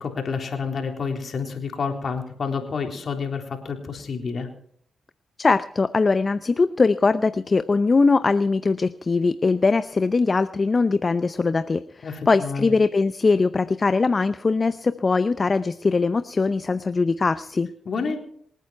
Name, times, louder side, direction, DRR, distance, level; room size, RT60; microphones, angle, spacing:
voice 1, 0.0-4.5 12.0-12.7 17.9-18.2, left 5 dB, 60° left, 2 dB, 3.6 m, -29 dB
voice 2, 5.4-17.7, left 4 dB, 45° left, 13 dB, 0.6 m, -21 dB
27.5 x 9.3 x 4.6 m, 0.65 s
supercardioid pair, 40°, 0 cm